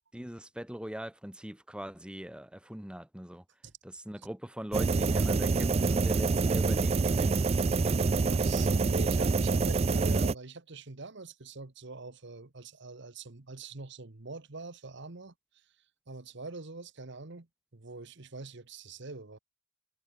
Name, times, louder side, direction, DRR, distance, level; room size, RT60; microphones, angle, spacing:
voice 1, 0.1-3.4 3.8-7.5, equal, 5° right, 1.0 m, -41 dB
sound 1, 4.7-10.3, right 4 dB, 30° right, 0.4 m, -26 dB
voice 2, 8.0-15.3 16.1-17.5 17.7-19.4, right 3 dB, 65° right, 1.4 m, -44 dB
head